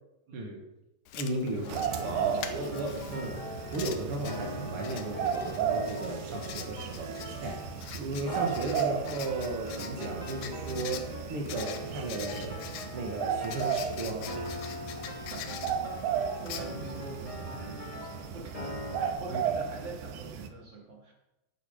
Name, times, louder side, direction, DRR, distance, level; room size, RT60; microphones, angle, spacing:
voice 1, 0.3-0.6 1.1-1.7 2.0-3.4 3.7-7.6 7.9-12.5 12.9-14.2 19.3-19.4, right 2 dB, 65° right, 0 dB, 1.3 m, -35 dB
Writing, 1.1-17.4, left 9 dB, 80° left, 1.9 m, -45 dB
voice 2, 1.5-2.8 15.0-21.1, right 2 dB, 30° right, -2 dB, 2.7 m, -45 dB
sound 1, 1.6-19.1, left 1 dB, 30° left, 0.6 m, -42 dB
sound 2, 1.7-20.5, right 8 dB, 85° right, 2.9 m, -35 dB
12.0 x 8.9 x 5.1 m, 0.94 s
omnidirectional pair, 4.8 m